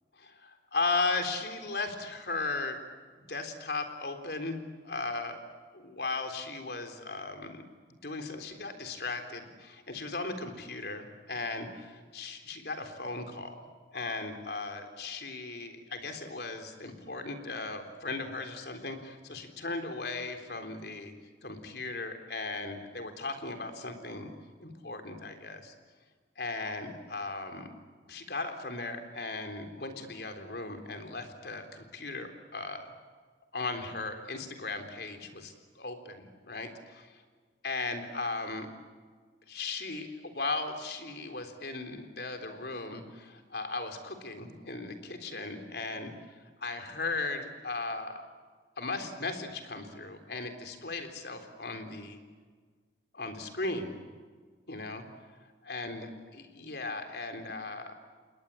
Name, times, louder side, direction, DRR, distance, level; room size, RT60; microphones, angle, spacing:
voice 1, 0.2-2.8 3.2-4.6 4.8-5.5 5.7-7.6 7.9-21.1 21.4-24.3 24.6-25.7 26.4-27.7 28.1-32.9 33.5-36.7 37.6-38.7 39.5-46.1 46.6-48.3 48.8-52.2 53.1-54.0 54.7-55.0 55.7-58.0, left 3 dB, 65° left, 6 dB, 3.8 m, -37 dB
29.0 x 21.0 x 8.6 m, 1.5 s
head